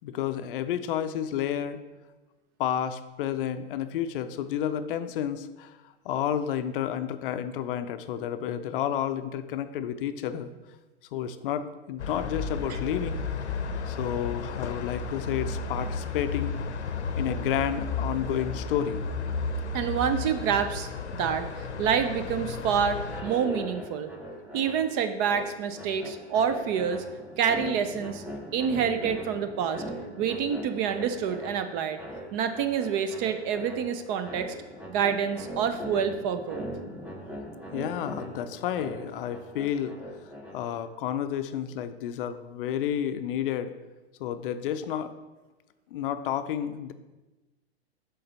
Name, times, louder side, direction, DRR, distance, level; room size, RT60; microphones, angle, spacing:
voice 1, 0.0-1.8 2.6-10.5 11.1-13.2 13.6-16.5 17.1-19.0 37.7-39.9 40.5-43.7 44.2-45.1 45.9-46.9, left 10 dB, 55° left, 10 dB, 0.5 m, -31 dB
sound 1, 12.0-23.2, left 4 dB, 90° left, 0.7 m, -33 dB
voice 2, 19.7-24.1 24.5-27.0 27.4-28.2 28.5-29.8 30.2-32.0 32.3-34.5 34.9-36.6, right 7 dB, 35° right, 10 dB, 0.5 m, -27 dB
sound 2, 23.0-40.9, equal, 5° right, 1.0 m, -41 dB
6.6 x 3.9 x 4.0 m, 1.1 s
hypercardioid pair, 110°, 33 cm